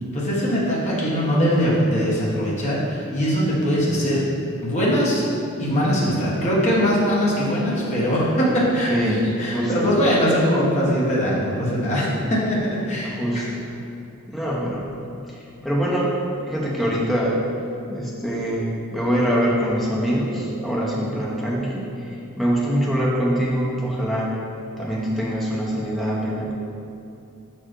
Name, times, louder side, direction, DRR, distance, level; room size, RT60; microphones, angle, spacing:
voice 1, 0.1-4.2 4.6-5.2 5.6-8.9 9.4-13.4, equal, 35° left, -6 dB, 1.3 m, -21 dB
voice 2, 8.9-10.0 13.0-13.7 14.3-14.9 15.3-16.2 16.4-17.5 17.9-24.3 24.8-26.5, equal, ahead, -5 dB, 0.9 m, -24 dB
5.8 x 4.5 x 4.6 m, 2.7 s
head